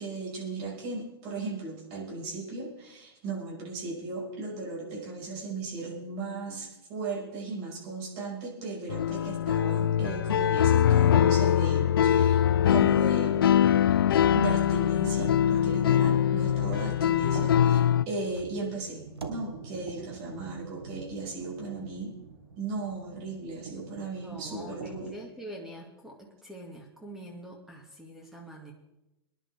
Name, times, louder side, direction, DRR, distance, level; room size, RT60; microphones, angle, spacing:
voice 1, 0.0-13.7 14.3-19.0 19.3-22.2 22.6-25.1, right 3 dB, 45° right, -2 dB, 5.6 m, -36 dB
sound 1, 8.9-18.0, left 10 dB, 65° left, 0.4 m, -23 dB
sound 2, 10.0-10.5 12.1-13.1 13.5-14.1 14.8-15.5 16.5-17.0 18.2-18.7 19.1-19.5, right 2 dB, 85° right, 1.0 m, -48 dB
sound 3, 14.1-25.0, right 4 dB, 65° right, 4.4 m, -45 dB
voice 2, 24.2-28.7, equal, 5° right, -1 dB, 2.3 m, -45 dB
24.5 x 11.0 x 3.6 m, 0.93 s
figure-of-eight pair, 95°, 13 cm